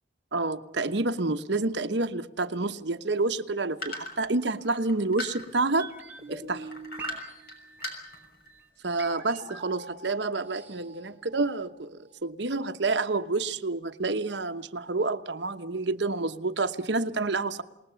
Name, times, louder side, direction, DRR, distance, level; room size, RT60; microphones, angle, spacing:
voice 1, 0.3-5.9 6.3-6.7 8.8-17.6, right 3 dB, 70° right, 10 dB, 1.1 m, -29 dB
sound 1, 3.8-5.8 6.7-7.5 7.8-8.5, left 1 dB, 55° left, 6.3 m, -37 dB
sound 2, 5.8-11.8 12.1-12.2, right 3 dB, 10° right, 5.5 m, -44 dB
28.0 x 20.0 x 7.0 m, 0.87 s
head